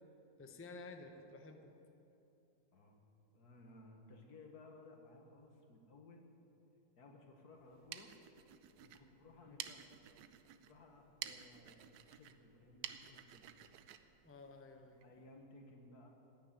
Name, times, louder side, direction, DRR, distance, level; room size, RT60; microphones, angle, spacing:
voice 1, 0.4-1.7 9.5-9.6 14.2-15.0, left 3 dB, 10° left, 5 dB, 0.6 m, -53 dB
voice 2, 3.3-6.3 7.0-8.1 8.8-9.8 10.6-13.5 15.0-16.1, left 2 dB, 80° left, 2 dB, 2.0 m, -59 dB
sound 1, 7.6-15.1, right 10 dB, 85° right, 1.2 m, -52 dB
15.0 x 6.8 x 9.5 m, 2.8 s
omnidirectional pair, 1.6 m